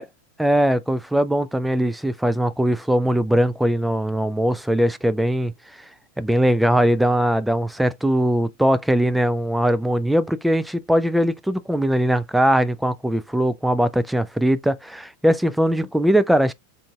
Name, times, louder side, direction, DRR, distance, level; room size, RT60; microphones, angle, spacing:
voice 1, 0.4-5.5 6.2-16.5, equal, 5° right, 0.3 m, -20 dB
3.8 x 3.6 x 2.3 m
figure-of-eight pair, 90°, 0 cm